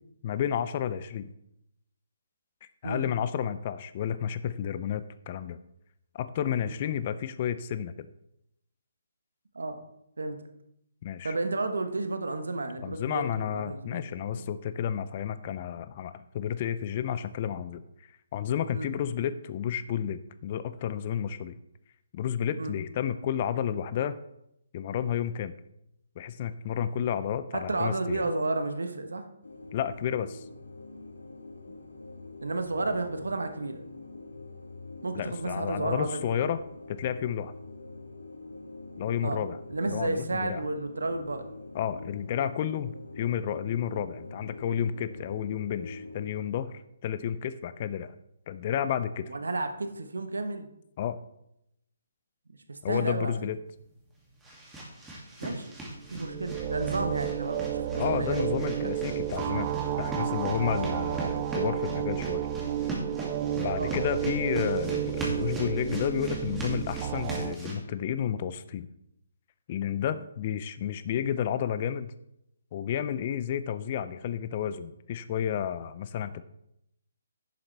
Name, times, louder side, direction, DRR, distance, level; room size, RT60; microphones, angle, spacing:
voice 1, 0.2-1.3 2.6-5.6 6.1-7.9 11.0-11.4 12.8-17.8 18.3-21.6 22.1-24.2 24.7-25.6 26.2-28.2 29.7-30.4 35.1-36.6 36.9-37.5 39.0-39.6 39.9-40.6 41.7-46.7 47.0-48.2 48.5-49.3 51.0-51.2 52.8-53.6 58.0-62.5 63.6-68.9 69.7-72.1 72.7-76.4, left 9 dB, 40° left, 13 dB, 0.5 m, -31 dB
voice 2, 11.2-14.0 14.3-14.4 18.7-19.0 22.6-22.8 27.5-29.2 31.7-31.8 32.4-33.9 35.0-36.3 39.2-39.4 39.7-41.5 49.3-50.7 52.5-53.3 55.4-55.7 56.1-59.0 60.7-60.9 63.8-63.9, right 2 dB, 80° right, 7 dB, 1.1 m, -32 dB
sound 1, 29.4-46.3, left 3 dB, 90° left, 1.6 m, -45 dB
sound 2, 53.7-67.8, right 1 dB, 10° right, 2.4 m, -39 dB
sound 3, 56.0-67.5, right 11 dB, 30° right, 0.4 m, -32 dB
11.0 x 7.1 x 3.4 m, 0.79 s
figure-of-eight pair, 145°, 0 cm